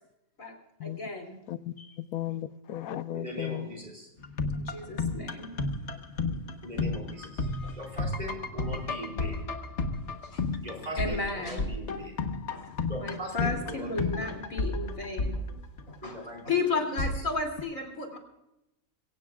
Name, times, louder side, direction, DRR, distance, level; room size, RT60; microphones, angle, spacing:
voice 1, 0.8-1.4 1.8-1.9 4.5-5.6 7.2-7.8 8.8-8.9 10.2-10.4 10.7-11.7 11.9-12.0 12.5-15.4 15.9-18.2, left 3 dB, 70° left, 3.3 m, -34 dB
voice 2, 1.5-3.7, left 12 dB, 90° left, 1.1 m, -36 dB
voice 3, 3.1-4.0 6.6-7.5 7.8-9.4 10.6-12.1 12.9-14.4 16.0-16.4 16.7-16.8, equal, 30° right, 5.4 m, -40 dB
sound 1, 4.2-16.1 17.0-17.6, left 3 dB, 55° left, 1.5 m, -32 dB
23.0 x 17.5 x 2.4 m
omnidirectional pair, 1.5 m